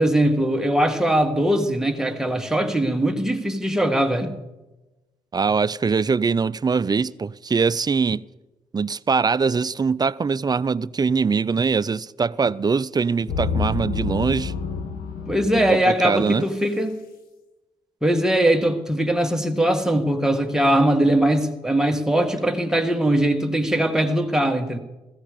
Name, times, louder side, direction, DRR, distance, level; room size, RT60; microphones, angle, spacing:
voice 1, 0.0-4.4 15.3-16.9 18.0-24.8, right 1 dB, 5° right, 1.6 m, -21 dB
voice 2, 5.3-8.2 8.7-14.5 15.7-16.4, right 5 dB, 25° right, 0.4 m, -22 dB
sound 1, 13.3-16.5, left 5 dB, 85° left, 1.2 m, -29 dB
15.0 x 14.5 x 5.0 m
supercardioid pair, 60°, 15 cm